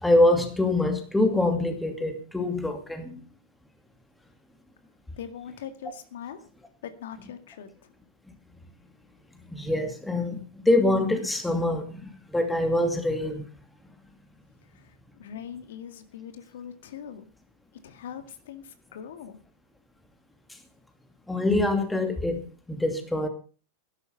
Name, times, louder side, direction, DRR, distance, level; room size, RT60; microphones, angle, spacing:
voice 1, 0.0-3.2 9.5-13.4 21.3-23.3, left 1 dB, 5° left, 2.6 m, -25 dB
voice 2, 5.2-6.5 6.8-7.9 14.7-17.3 17.8-19.4, left 8 dB, 80° left, 2.0 m, -41 dB
12.5 x 11.0 x 6.7 m
supercardioid pair, 140°, 0 cm